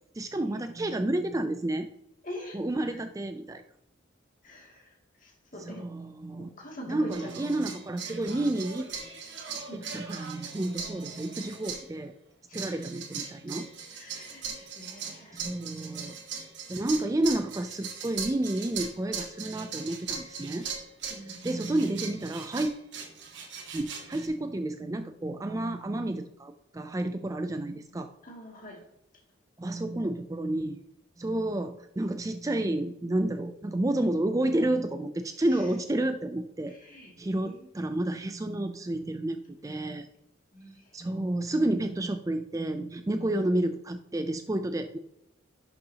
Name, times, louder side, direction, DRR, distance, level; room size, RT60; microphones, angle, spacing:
voice 1, 0.1-1.9 2.5-3.6 5.6-6.5 6.9-8.9 9.5-12.1 12.5-13.7 15.3-16.2 16.7-20.7 21.3-22.7 23.7-28.1 29.6-30.8 31.2-36.7 37.2-40.1 40.9-45.0, right 1 dB, 15° right, 8 dB, 0.3 m, -30 dB
voice 2, 2.2-2.6 2.8-3.0 4.4-5.9 6.4-7.8 9.7-10.1 12.5-12.8 13.2-13.3 13.9-15.5 21.1-21.6 28.2-28.8 35.4-35.7 36.7-37.7 40.5-41.0, equal, 40° left, -1 dB, 2.4 m, -45 dB
sound 1, 7.1-11.9 12.5-24.3, right 6 dB, 60° right, 1.6 m, -39 dB
11.0 x 6.6 x 2.8 m, 0.85 s
head